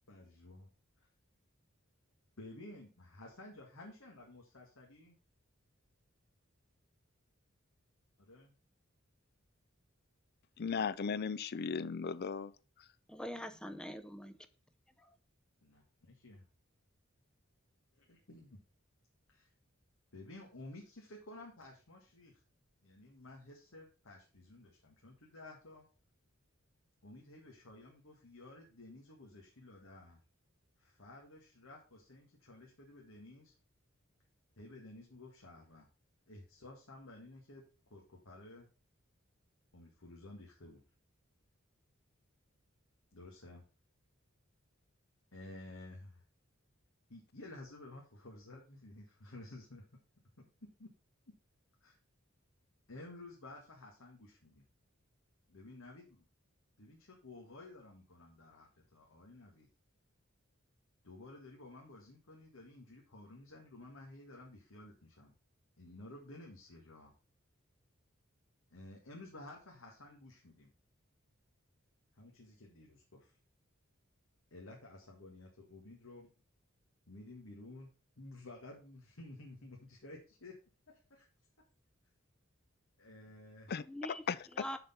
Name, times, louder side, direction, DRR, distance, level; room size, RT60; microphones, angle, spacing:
voice 1, 0.1-0.7 2.4-5.1 8.2-8.5 15.6-16.4 18.1-18.6 19.3-19.5 20.1-22.4 22.8-25.9 27.0-30.2 30.8-33.5 34.6-35.9 36.3-37.6 37.9-38.7 39.7-40.8 43.1-43.6 45.3-46.2 47.1-49.8 50.4-50.9 51.3-51.4 51.8-51.9 52.9-54.6 55.5-56.2 56.8-59.7 61.0-65.3 65.8-67.1 68.7-70.7 72.1-73.3 74.5-76.3 77.1-77.9 78.2-80.6 80.9-81.3 83.0-83.7, left 2 dB, 85° left, 1.8 m, -53 dB
voice 2, 10.6-12.5 83.7-83.8 84.3-84.6, left 5 dB, 50° left, 0.5 m, -36 dB
voice 3, 13.1-14.3 83.8-84.2 84.5-84.8, equal, 5° left, 0.5 m, -43 dB
6.6 x 6.0 x 5.7 m
head